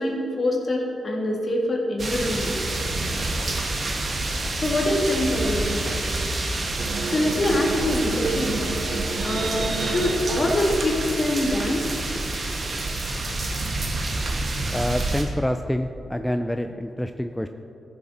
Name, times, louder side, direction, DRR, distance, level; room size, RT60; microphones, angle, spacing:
voice 1, 0.0-2.6 4.6-5.9 7.1-8.7 9.2-11.9, left 1 dB, 45° left, -1 dB, 2.4 m, -24 dB
sound 1, 2.0-15.2, right 2 dB, 50° right, 1.7 m, -28 dB
sound 2, 6.8-10.2, right 4 dB, 65° right, 1.0 m, -31 dB
voice 2, 14.7-17.5, equal, 5° left, 6 dB, 0.5 m, -27 dB
14.5 x 7.2 x 4.4 m, 2.8 s
cardioid pair, 55°, 0 cm